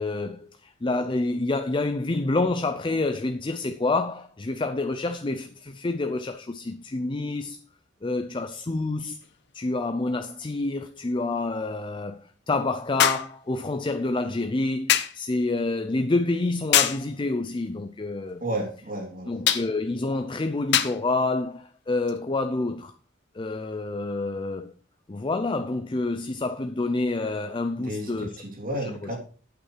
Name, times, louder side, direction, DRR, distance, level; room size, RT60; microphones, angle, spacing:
voice 1, 0.0-7.6 8.0-9.2 9.5-12.2 12.5-18.4 19.3-22.9 23.3-24.7 25.1-28.4 28.8-29.1, left 2 dB, 25° left, 0.5 m, -28 dB
sound 1, 9.2-9.3 13.0-13.3 14.9-15.2 16.7-17.1 19.5-19.7 20.7-21.0 22.1-22.2, left 10 dB, 60° left, 0.8 m, -22 dB
voice 2, 18.4-19.5 27.8-29.2, right 1 dB, 45° right, 3.1 m, -32 dB
8.6 x 8.5 x 4.7 m
head